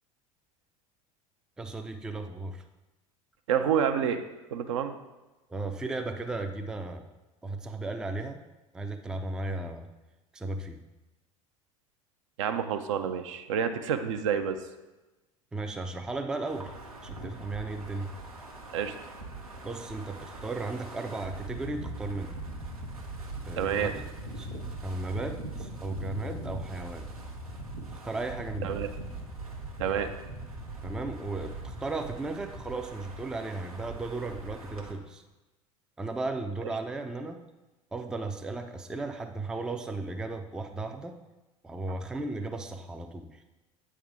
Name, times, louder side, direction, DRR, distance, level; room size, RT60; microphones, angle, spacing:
voice 1, 1.6-2.6 5.5-7.1 7.4-8.4 8.7-9.9 10.3-10.8 15.5-16.7 17.0-18.1 19.6-22.4 23.5-24.0 24.4-24.5 24.8-27.1 28.0-28.9 30.8-35.2 36.0-37.4 37.9-41.2 41.6-43.4, right 2 dB, 5° right, 6 dB, 0.4 m, -35 dB
voice 2, 3.5-4.2 4.5-4.9 12.4-14.6 18.7-18.9 23.6-23.9 28.6-28.9 29.8-30.1, right 8 dB, 60° right, 8 dB, 0.5 m, -28 dB
Wind, 16.5-34.9, right 2 dB, 90° right, 0.9 m, -41 dB
8.4 x 3.6 x 3.5 m, 1.1 s
figure-of-eight pair, 75°, 18 cm